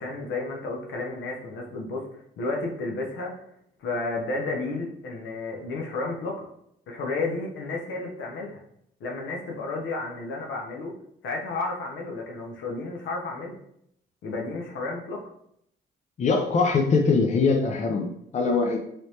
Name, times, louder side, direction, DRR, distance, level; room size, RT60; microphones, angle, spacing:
voice 1, 0.0-2.0 2.4-3.3 3.8-6.5 6.9-8.6 9.0-10.9 11.2-13.6 14.2-15.2, left 3 dB, 75° left, 0 dB, 0.8 m, -32 dB
voice 2, 16.2-18.8, left 4 dB, 35° left, 2 dB, 0.5 m, -22 dB
3.2 x 3.1 x 2.8 m, 0.73 s
cardioid pair, 90°, 20 cm